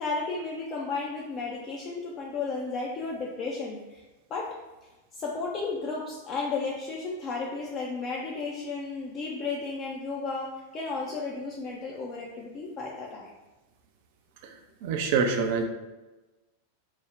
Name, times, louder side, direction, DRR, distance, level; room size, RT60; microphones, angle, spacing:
voice 1, 0.0-4.0 4.3-4.5 5.1-13.3, left 4 dB, 30° left, -3 dB, 0.3 m, -33 dB
voice 2, 14.8-15.6, right 5 dB, 50° right, 4 dB, 0.3 m, -25 dB
2.4 x 2.1 x 3.4 m, 1.1 s
figure-of-eight pair, 90°, 0 cm